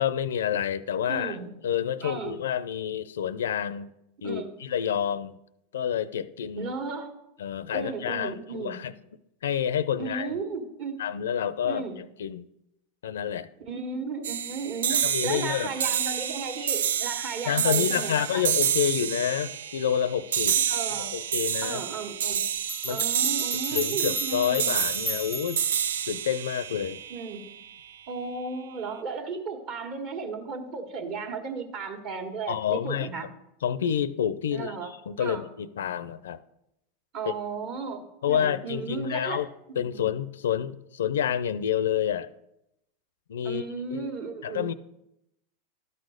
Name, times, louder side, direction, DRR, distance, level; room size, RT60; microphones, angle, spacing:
voice 1, 0.0-1.4 1.6-3.9 4.2-5.4 5.7-6.7 7.4-9.0 9.4-10.4 11.0-12.5 13.0-13.5 14.9-15.9 17.5-20.6 20.9-21.8 22.8-23.0 23.7-25.6 26.1-27.0 32.5-33.3 33.6-36.4 37.3-37.4 38.2-39.5 39.8-42.3 43.3-43.6 43.9-44.1 44.4-44.7, left 9 dB, 90° left, 16 dB, 0.5 m, -28 dB
voice 2, 1.1-1.6 2.0-2.4 4.2-4.5 6.5-7.1 7.7-8.8 10.0-11.0 11.6-12.0 13.7-18.4 20.7-21.1 21.6-22.5 22.9-24.8 27.1-27.6 28.1-33.3 34.5-34.9 35.2-35.4 37.1-39.4 39.7-40.1 43.4-44.7, right 4 dB, 50° right, 6 dB, 1.5 m, -35 dB
sound 1, 14.2-27.7, right 9 dB, 90° right, 0.3 m, -29 dB
sound 2, 22.3-22.4 22.7-25.8, equal, ahead, 0.6 m, -35 dB
12.5 x 4.2 x 6.4 m, 0.85 s
hypercardioid pair, 115°, 0 cm